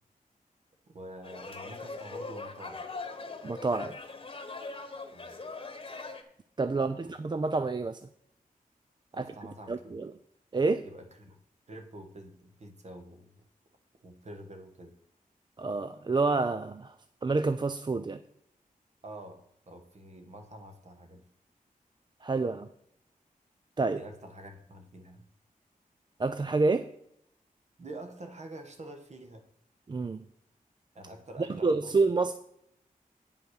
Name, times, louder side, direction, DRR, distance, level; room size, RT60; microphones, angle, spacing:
voice 1, 0.9-2.9 5.1-5.4 6.8-7.0 9.1-10.0 10.8-11.4 11.7-13.4 14.0-14.9 19.0-21.2 24.0-25.2 27.8-29.4 30.9-32.0, right 1 dB, 50° right, 6 dB, 1.4 m, -47 dB
sound 1, 1.2-6.2, left 3 dB, 35° left, 1.1 m, -41 dB
voice 2, 3.4-3.9 6.6-8.0 9.1-9.2 9.7-10.1 10.5-10.8 15.6-16.9 17.2-18.2 22.2-22.7 23.8-24.0 26.2-26.9 29.9-30.3 31.6-32.3, right 3 dB, 30° right, 10 dB, 0.4 m, -28 dB
9.2 x 5.7 x 6.4 m, 0.73 s
wide cardioid pair, 130°, 15 cm